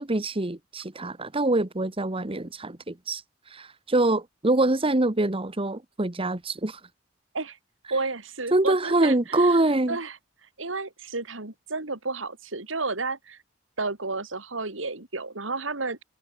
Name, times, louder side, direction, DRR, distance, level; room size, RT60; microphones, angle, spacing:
voice 1, 0.0-3.2 3.5-6.8 8.5-10.0, right 2 dB, 30° right, 1.4 m, -24 dB
voice 2, 7.9-9.6 9.9-10.2 10.6-13.4 13.8-16.0, right 3 dB, 80° right, 3.2 m, -31 dB
head